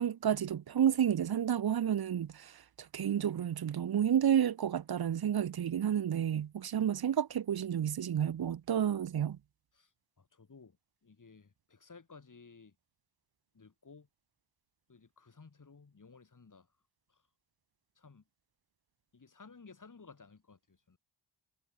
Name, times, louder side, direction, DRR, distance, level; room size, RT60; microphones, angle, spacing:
voice 1, 0.0-2.6 2.9-9.4, right 9 dB, 50° right, 0.7 m, -30 dB
voice 2, 9.7-10.8 11.0-12.8 13.5-14.1 14.9-16.7 17.1-17.2 18.0-18.2 19.1-21.0, left 4 dB, 40° left, 3.5 m, -56 dB
wide cardioid pair, 85°, 46 cm